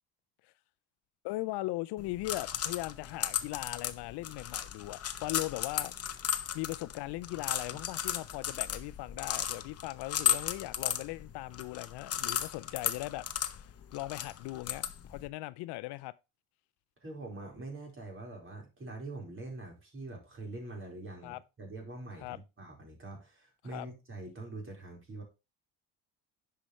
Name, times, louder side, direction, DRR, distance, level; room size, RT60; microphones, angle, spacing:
voice 1, 1.2-5.9 6.2-13.3 13.5-16.1 21.2-21.4 22.2-22.4 23.7-23.9, left 19 dB, 70° left, 0.5 m, -39 dB
sound 1, 2.0-15.3, left 9 dB, 35° left, 0.9 m, -35 dB
voice 2, 17.0-25.2, right 2 dB, 30° right, 4.3 m, -44 dB
9.8 x 5.8 x 3.1 m
supercardioid pair, 85°, 42 cm